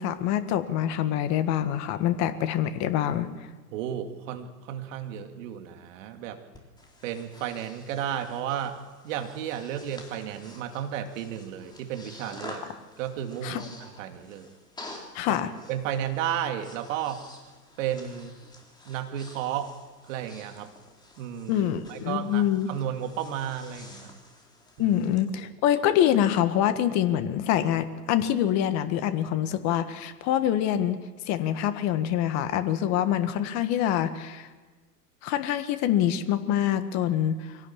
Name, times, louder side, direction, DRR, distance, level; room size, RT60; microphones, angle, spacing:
voice 1, 0.0-3.3 13.4-13.6 15.1-15.5 21.5-22.7 24.8-31.0 31.3-34.5 35.2-37.6, left 11 dB, 35° left, 10 dB, 1.6 m, -25 dB
voice 2, 3.7-6.4 7.0-8.8 9.0-12.6 13.0-14.5 15.3-17.2 17.8-18.4 18.9-19.7 20.1-20.7 21.2-24.1 24.8-25.0 25.4-25.5, right 10 dB, 50° right, 6 dB, 2.6 m, -33 dB
Breathing, 6.5-25.2, left 2 dB, 10° left, 3.6 m, -49 dB
24.5 x 17.5 x 7.4 m, 1.3 s
hypercardioid pair, 120°, 48 cm